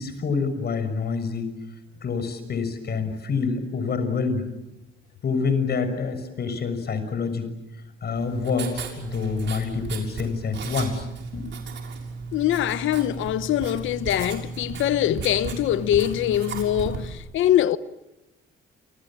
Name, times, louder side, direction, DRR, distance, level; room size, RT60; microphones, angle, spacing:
voice 1, 0.0-1.5 2.0-4.5 5.2-7.5 8.0-11.1 11.3-11.5, left 5 dB, 55° left, 6.4 m, -27 dB
Writing, 8.1-17.1, right 5 dB, 65° right, 6.6 m, -35 dB
voice 2, 12.3-17.8, left 12 dB, 80° left, 1.0 m, -23 dB
29.5 x 26.0 x 7.6 m
cardioid pair, 90°, 20 cm